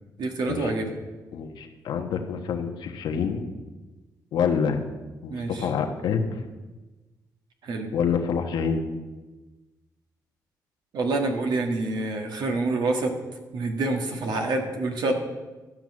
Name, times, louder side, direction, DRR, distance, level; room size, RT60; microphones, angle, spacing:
voice 1, 0.2-0.9 5.3-5.7 7.6-7.9 10.9-13.1 13.5-15.1, right 2 dB, 70° right, 2 dB, 1.5 m, -27 dB
voice 2, 1.3-3.4 4.3-4.8 5.2-6.3 7.9-8.8, left 6 dB, 80° left, 5 dB, 1.1 m, -27 dB
12.5 x 6.1 x 6.1 m, 1.2 s
cardioid pair, 80°, 8 cm